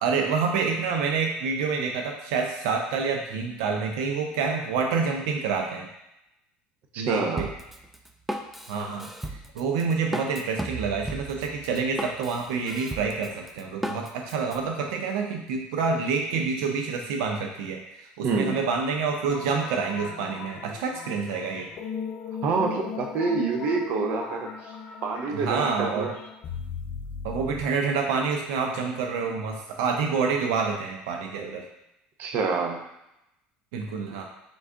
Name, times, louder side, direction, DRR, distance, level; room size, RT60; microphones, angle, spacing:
voice 1, 0.0-5.9 7.0-7.5 8.7-21.7 25.3-26.1 27.2-31.6 33.7-34.2, right 5 dB, 90° right, 2 dB, 0.5 m, -27 dB
voice 2, 6.9-7.5 18.2-18.6 22.4-24.7 25.0-26.1 31.4-31.6 32.2-32.8, right 4 dB, 55° right, 3 dB, 0.7 m, -27 dB
Drum kit, 7.4-14.6, right 1 dB, 5° right, 0.3 m, -35 dB
sound 1, 19.3-27.7, left 6 dB, 45° left, 0.5 m, -38 dB
3.8 x 3.3 x 3.7 m, 0.86 s
cardioid pair, 125°, 3 cm